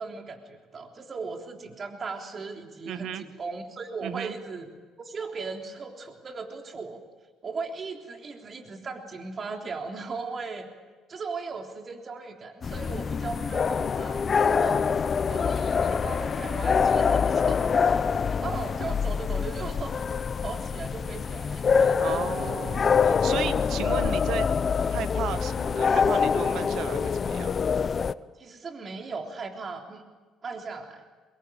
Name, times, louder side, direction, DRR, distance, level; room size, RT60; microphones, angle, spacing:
voice 1, 0.0-4.7 5.0-7.0 7.4-10.7 11.1-15.0 15.3-20.0 20.4-22.4 28.4-30.0 30.4-31.0, right 4 dB, 40° right, 3 dB, 3.5 m, -37 dB
voice 2, 2.9-3.2 4.0-4.3 22.0-24.5 24.9-27.5, right 9 dB, 65° right, 12 dB, 1.5 m, -34 dB
sound 1, 12.6-28.1, left 6 dB, 45° left, 0.8 m, -25 dB
24.5 x 22.0 x 8.8 m, 1.3 s
hypercardioid pair, 60°, 0 cm